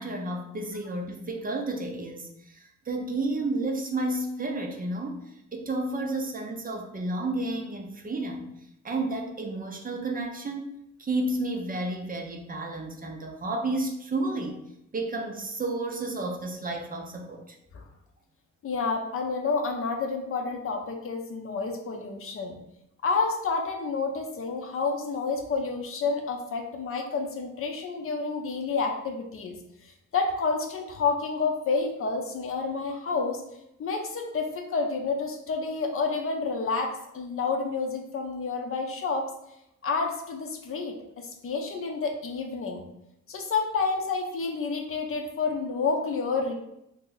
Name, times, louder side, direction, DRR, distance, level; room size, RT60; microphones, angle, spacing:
voice 1, 0.0-8.5 8.8-10.7 11.0-14.6 14.9-17.5, right 2 dB, 30° right, 3 dB, 0.5 m, -31 dB
voice 2, 18.6-22.6 23.0-29.6 30.1-33.4 33.8-39.3 39.8-42.8 43.3-46.5, left 4 dB, 45° left, 3 dB, 0.6 m, -29 dB
2.8 x 2.6 x 3.8 m, 0.81 s
cardioid pair, 90°, 30 cm